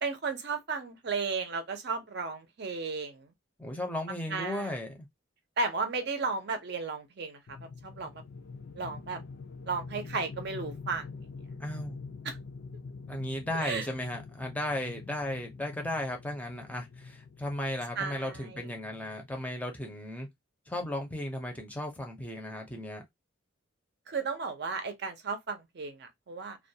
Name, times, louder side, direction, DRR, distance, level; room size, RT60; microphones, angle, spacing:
voice 1, 0.0-3.2 4.3-4.8 5.6-7.4 7.8-8.1 8.8-9.2 9.7-11.1 12.2-12.4 13.5-13.9 18.0-18.6 24.1-26.6, right 4 dB, 55° right, 0.6 m, -34 dB
voice 2, 3.6-5.0 11.6-12.0 12.9-20.3 20.7-23.0, left 1 dB, 5° left, 0.6 m, -35 dB
sound 1, 7.5-19.7, left 4 dB, 55° left, 0.4 m, -45 dB
2.3 x 2.2 x 2.7 m
head